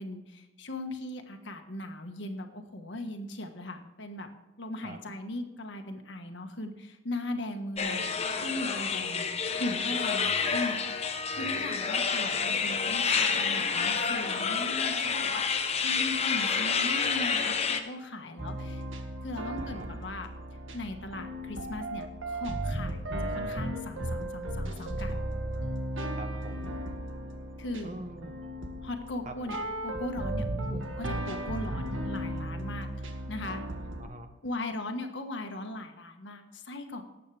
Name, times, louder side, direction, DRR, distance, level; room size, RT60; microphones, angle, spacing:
voice 1, 0.0-4.3 4.6-9.3 9.6-18.8 19.2-20.3 20.7-25.3 27.6-27.9 28.8-29.6 29.8-32.9 33.3-33.6 34.4-37.0, left 1 dB, 65° left, 5 dB, 1.5 m, -38 dB
sound 1, 7.8-17.8, left 5 dB, 35° left, 0.9 m, -29 dB
voice 2, 10.2-10.6 11.3-11.6 19.6-19.9 26.2-26.8 27.8-28.3 29.2-29.6 34.0-34.3, right 2 dB, 40° right, 7 dB, 1.1 m, -45 dB
sound 2, 18.4-34.0, right 1 dB, 85° right, 1.8 m, -35 dB
18.5 x 8.5 x 3.4 m, 1.1 s
head